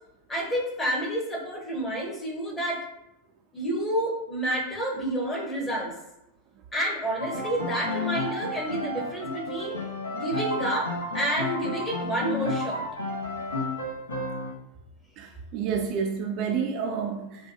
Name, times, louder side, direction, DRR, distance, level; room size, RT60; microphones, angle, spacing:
voice 1, 0.3-2.8 3.5-5.9 6.7-9.8 10.1-10.9 11.1-12.8, right 1 dB, 15° left, -2 dB, 1.1 m, -29 dB
Piano, 7.2-14.5, left 1 dB, 70° left, 0.7 m, -31 dB
voice 2, 15.2-17.5, right 6 dB, 40° right, 3 dB, 0.4 m, -29 dB
5.4 x 2.3 x 2.8 m, 0.86 s
figure-of-eight pair, 90°, 0 cm